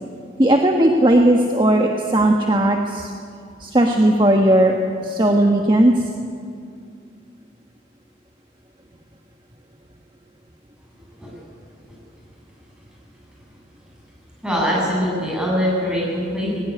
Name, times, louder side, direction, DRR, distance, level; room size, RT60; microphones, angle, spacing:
voice 1, 0.4-3.1 3.6-5.9, right 1 dB, 25° right, 2 dB, 1.3 m, -16 dB
voice 2, 14.4-16.6, equal, 5° right, -4 dB, 7.5 m, -22 dB
20.5 x 18.5 x 9.8 m, 2.3 s
head